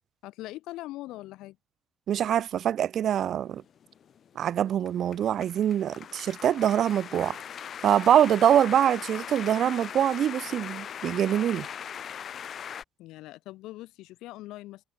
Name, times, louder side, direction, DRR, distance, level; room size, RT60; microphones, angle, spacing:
voice 1, 0.2-1.6 13.0-14.8, left 17 dB, 80° left, 1.3 m, -41 dB
voice 2, 2.1-3.6 4.4-7.4 7.8-11.7, right 10 dB, 50° right, 0.6 m, -24 dB
sound 1, 3.6-12.8, left 8 dB, 45° left, 1.7 m, -40 dB
cardioid pair, 125°, 0 cm